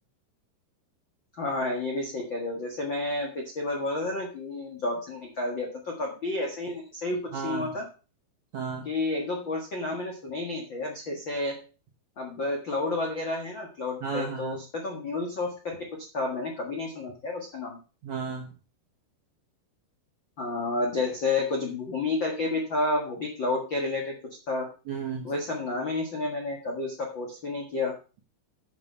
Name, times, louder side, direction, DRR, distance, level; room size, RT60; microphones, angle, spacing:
voice 1, 1.3-7.9 8.8-11.6 12.2-15.8 16.1-17.8 20.4-24.1 24.5-24.7 25.2-27.9, left 2 dB, 80° left, 0 dB, 1.0 m, -30 dB
voice 2, 7.3-7.7 8.5-8.8 14.0-14.6 18.0-18.5 24.9-25.3, right 5 dB, 65° right, 0 dB, 1.8 m, -33 dB
11.0 x 6.1 x 5.5 m, 0.35 s
omnidirectional pair, 5.2 m